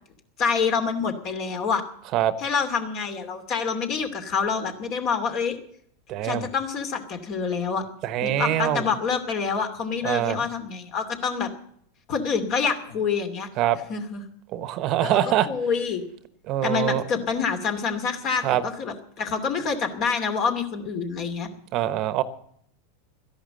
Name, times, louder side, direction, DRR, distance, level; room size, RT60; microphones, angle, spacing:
voice 1, 0.4-1.8 2.4-5.6 6.2-7.8 8.2-11.5 12.1-13.5 13.9-14.2 15.0-15.2 15.5-16.0 16.6-21.5, left 5 dB, 45° left, 7 dB, 2.6 m, -27 dB
voice 2, 6.1-6.5 8.0-8.9 10.0-10.4 13.6-13.8 14.5-15.5 16.5-17.0 18.4-18.6 21.7-22.2, right 12 dB, 45° right, 14 dB, 1.0 m, -24 dB
13.5 x 11.0 x 7.7 m, 0.68 s
hypercardioid pair, 95°, 0 cm